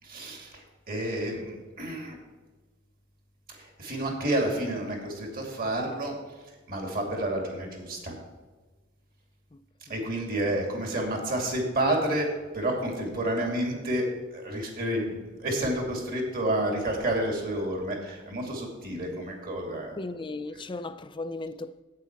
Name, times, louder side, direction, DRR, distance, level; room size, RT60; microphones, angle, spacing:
voice 1, 0.0-2.2 3.5-6.2 6.7-8.1 9.9-14.1 14.3-20.0, right 1 dB, 45° right, 2.5 m, -30 dB
voice 2, 20.0-21.8, left 2 dB, 25° left, 0.4 m, -36 dB
8.4 x 8.1 x 5.9 m
head